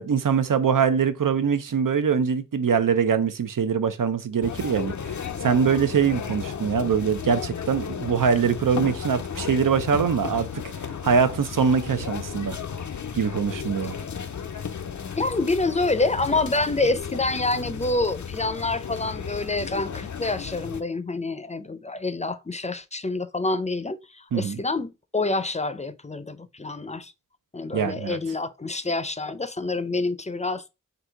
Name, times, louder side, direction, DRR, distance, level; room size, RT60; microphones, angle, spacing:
voice 1, 0.0-4.9 5.4-10.5 11.0-12.6 13.1-13.9 24.3-24.6 27.7-28.2, right 6 dB, 85° right, 0.6 m, -23 dB
sound 1, 4.4-20.8, left 7 dB, 65° left, 0.5 m, -34 dB
voice 2, 15.1-27.1 27.5-30.7, left 3 dB, 20° left, 0.5 m, -27 dB
3.9 x 2.7 x 4.5 m
wide cardioid pair, 55°, 32 cm